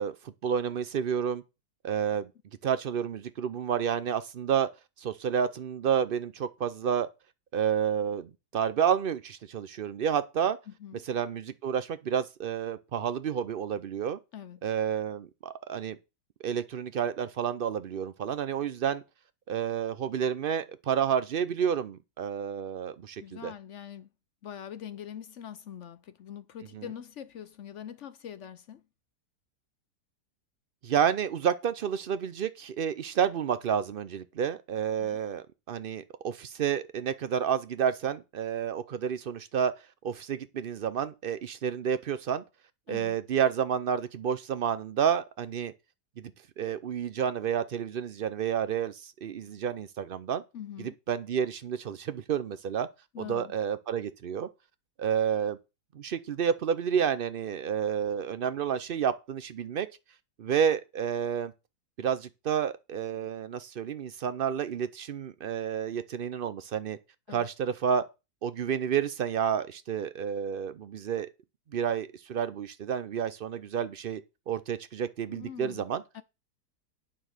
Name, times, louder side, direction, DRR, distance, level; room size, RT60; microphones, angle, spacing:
voice 1, 0.0-1.4 1.8-2.3 2.6-4.7 5.0-7.1 7.5-10.6 11.1-14.2 14.6-16.0 16.4-19.0 19.5-23.5 26.7-26.8 30.8-39.7 40.0-42.4 42.9-45.7 46.2-46.3 46.6-50.4 50.8-52.9 53.2-54.5 55.0-55.6 55.9-59.9 60.4-61.5 62.0-67.0 67.3-68.0 68.4-71.3 71.7-74.2 74.5-76.0, right 8 dB, 85° right, 0.4 m, -30 dB
voice 2, 10.7-11.0 14.3-14.6 23.2-24.1 24.4-28.8 35.0-35.2 42.9-43.2 50.5-51.0 53.1-53.5 67.3-67.5 75.3-75.8 76.1-76.2, left 9 dB, 60° left, 0.8 m, -43 dB
9.2 x 5.8 x 6.5 m
omnidirectional pair, 1.8 m